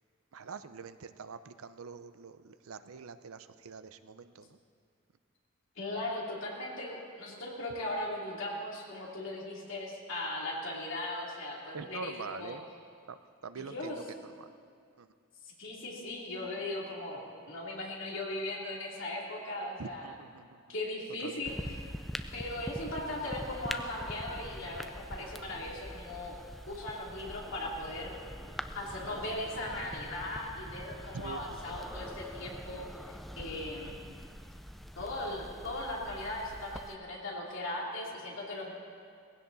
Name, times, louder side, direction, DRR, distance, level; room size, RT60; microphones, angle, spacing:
voice 1, 0.3-4.6 11.7-12.7 13.1-14.5 15.0-15.1 19.8-20.6 21.2-21.5 31.1-31.5, right 5 dB, 85° right, 11 dB, 0.6 m, -45 dB
voice 2, 5.8-12.6 13.6-14.0 15.4-20.1 20.7-21.8 22.3-26.4 26.7-34.0 35.0-38.7, left 1 dB, 65° left, -3 dB, 2.9 m, -38 dB
sound 1, 21.4-37.0, equal, ahead, 0.3 m, -44 dB
19.0 x 16.0 x 4.0 m, 2.2 s
head